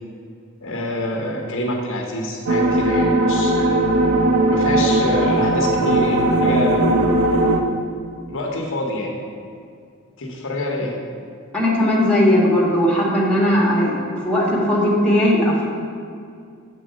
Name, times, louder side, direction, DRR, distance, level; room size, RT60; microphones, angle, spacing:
voice 1, 0.6-3.7 4.5-6.9 8.3-9.1 10.2-10.9, left 1 dB, 65° left, 0 dB, 0.9 m, -26 dB
sound 1, 2.5-7.6, right 1 dB, 90° right, 0.6 m, -18 dB
voice 2, 11.5-15.6, left 1 dB, 5° left, -5 dB, 1.5 m, -18 dB
7.4 x 4.5 x 4.9 m, 2.3 s
head